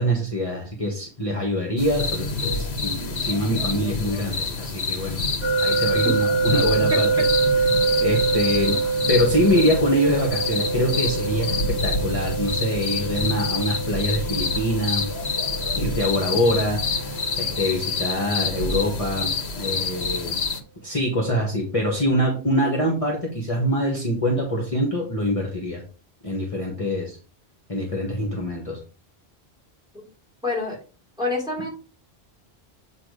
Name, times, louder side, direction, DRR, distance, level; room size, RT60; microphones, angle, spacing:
voice 1, 0.0-5.2 5.6-7.3 8.0-8.8 9.1-15.0 15.8-20.4 20.8-25.8 26.2-27.2 27.7-28.8, equal, 30° left, -1 dB, 1.6 m, -24 dB
sound 1, 1.8-20.6, left 4 dB, 75° left, 1.3 m, -27 dB
sound 2, 5.4-18.3, right 4 dB, 30° right, 2.0 m, -26 dB
voice 2, 30.4-30.8 31.2-31.7, left 2 dB, 5° right, -3 dB, 3.4 m, -26 dB
8.7 x 3.3 x 4.8 m, 0.36 s
omnidirectional pair, 1.1 m